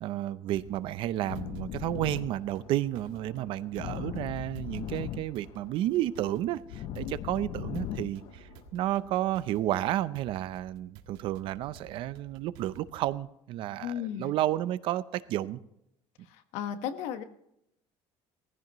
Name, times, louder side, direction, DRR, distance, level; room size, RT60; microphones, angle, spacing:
voice 1, 0.0-15.6, right 13 dB, 55° right, 15 dB, 0.6 m, -31 dB
sound 1, 0.6-13.2, right 6 dB, 90° right, 1.6 m, -54 dB
sound 2, 1.3-9.3, left 11 dB, 55° left, 0.6 m, -40 dB
voice 2, 13.8-14.3 16.3-17.2, left 9 dB, 85° left, 9 dB, 1.4 m, -35 dB
19.5 x 15.5 x 3.1 m, 0.79 s
cardioid pair, 165°, 11 cm